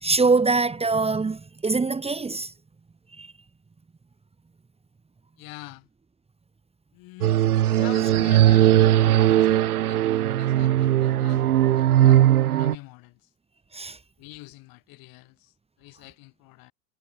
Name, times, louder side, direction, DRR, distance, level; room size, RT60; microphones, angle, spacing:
voice 1, 0.0-2.5 3.1-3.3 13.7-14.0, right 3 dB, 15° right, 2.1 m, -23 dB
voice 2, 5.4-5.9 6.9-7.4 7.7-8.7 9.2-11.5 11.7-13.3 14.2-16.7, left 22 dB, 50° left, 6.5 m, -45 dB
sound 1, 7.2-12.8, right 13 dB, 80° right, 0.7 m, -19 dB
hypercardioid pair, 85°, 44 cm